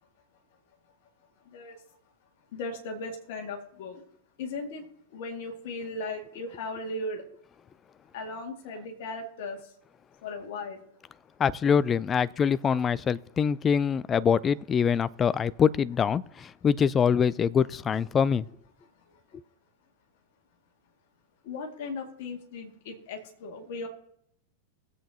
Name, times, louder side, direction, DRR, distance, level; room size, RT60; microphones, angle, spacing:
voice 1, 1.5-1.8 2.5-4.0 4.4-7.2 8.1-9.7 10.2-10.8 19.1-19.2 21.4-23.9, left 2 dB, 55° left, 2.0 m, -37 dB
voice 2, 11.4-18.4, left 7 dB, 25° left, 0.4 m, -24 dB
19.0 x 8.0 x 2.8 m
figure-of-eight pair, 90°, 0 cm